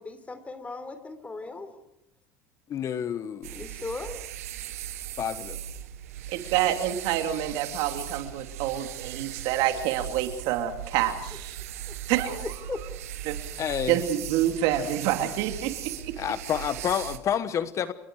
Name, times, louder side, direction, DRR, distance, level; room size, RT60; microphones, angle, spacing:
voice 1, 0.0-1.7 3.5-4.2 11.9-12.8, left 3 dB, 15° left, 10 dB, 3.9 m, -38 dB
voice 2, 2.7-3.5 5.2-5.6 13.6-14.0 16.2-17.9, left 9 dB, 40° left, 13 dB, 1.2 m, -29 dB
sound 1, 3.4-17.2, right 11 dB, 85° right, 1.6 m, -38 dB
voice 3, 6.3-11.6 12.1-12.5 13.3-13.4 13.9-16.1, right 11 dB, 65° right, 6 dB, 3.0 m, -27 dB
29.5 x 25.0 x 4.9 m, 0.82 s
supercardioid pair, 95°, 8 cm